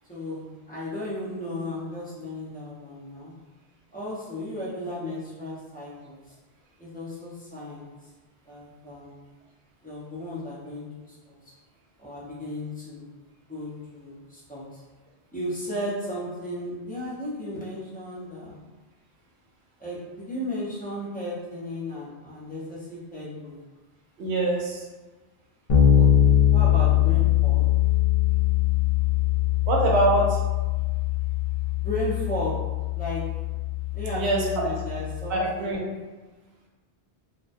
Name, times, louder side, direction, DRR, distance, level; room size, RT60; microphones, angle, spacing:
voice 1, 0.1-3.3 3.9-6.3 6.8-7.9 8.5-9.2 9.8-11.3 12.0-13.1 13.5-14.8 15.3-18.6 19.8-23.5 25.9-27.7 31.8-32.6 32.9-33.2 33.9-35.8, left 1 dB, 10° left, -9 dB, 0.6 m, -35 dB
voice 2, 24.2-24.8 29.7-30.4 34.1-34.4 35.3-35.8, right 2 dB, 80° right, -1 dB, 0.9 m, -23 dB
Bass guitar, 25.7-35.3, left 11 dB, 65° left, 0.7 m, -22 dB
2.3 x 2.1 x 2.5 m, 1.2 s
omnidirectional pair, 1.1 m